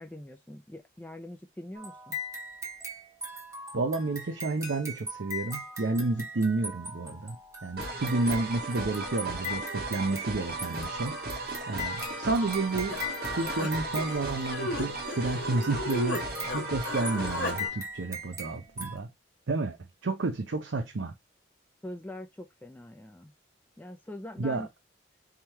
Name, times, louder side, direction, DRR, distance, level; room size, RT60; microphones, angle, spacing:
voice 1, 0.0-2.2 21.8-23.3 23.8-24.7, left 1 dB, 10° left, 0.4 m, -43 dB
sound 1, 1.7-14.9 15.6-19.0, left 1 dB, 15° right, 1.1 m, -40 dB
voice 2, 3.7-7.4 7.6-13.0 13.3-19.1 19.5-19.8 20.0-21.2 24.4-24.7, right 3 dB, 80° right, 0.6 m, -31 dB
sound 2, 7.8-17.7, right 2 dB, 55° right, 1.1 m, -36 dB
Human voice, 12.9-16.2 16.5-17.6, left 2 dB, 75° left, 1.2 m, -35 dB
3.6 x 2.9 x 4.5 m
head